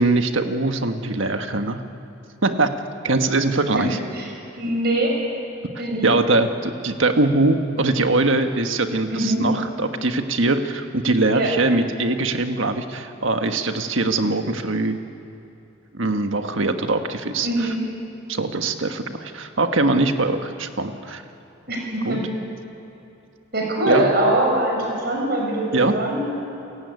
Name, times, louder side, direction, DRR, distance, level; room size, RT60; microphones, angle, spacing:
voice 1, 0.0-1.8 2.4-2.8 3.0-4.0 6.0-15.0 15.9-17.5 18.3-21.2 22.0-22.2 23.9-24.1 25.7-26.0, right 2 dB, 70° right, 6 dB, 1.5 m, -22 dB
voice 2, 4.6-5.1 5.8-6.1 9.1-9.5 11.3-11.5 17.4-17.8 21.7-22.2 23.5-26.4, right 1 dB, 50° right, 0 dB, 6.1 m, -22 dB
29.5 x 16.5 x 9.6 m, 2.9 s
head